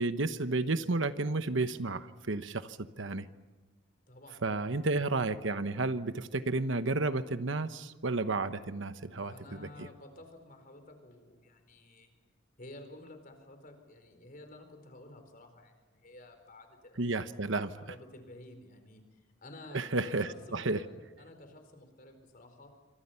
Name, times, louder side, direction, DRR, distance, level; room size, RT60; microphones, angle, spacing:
voice 1, 0.0-3.3 4.4-9.9 17.0-17.7 19.7-20.8, right 3 dB, 65° right, 11 dB, 1.1 m, -32 dB
voice 2, 4.1-4.7 9.2-12.1 12.6-17.1 17.8-22.7, left 1 dB, 45° left, 6 dB, 4.4 m, -52 dB
28.0 x 25.5 x 5.8 m, 1.2 s
head